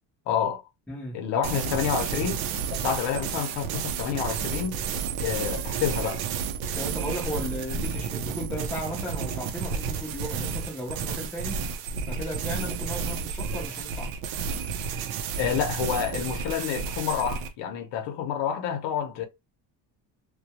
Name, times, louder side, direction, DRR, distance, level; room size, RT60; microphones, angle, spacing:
voice 1, 0.3-0.6 1.1-2.4 2.8-4.8 5.2-6.2 15.4-19.3, left 8 dB, 70° left, 0.8 m, -28 dB
voice 2, 0.9-1.2 6.8-11.6 12.1-14.1, equal, 5° left, 0.5 m, -35 dB
sound 1, 1.4-17.5, right 6 dB, 85° right, 0.6 m, -31 dB
2.2 x 2.1 x 2.7 m
cardioid pair, 175°, 44 cm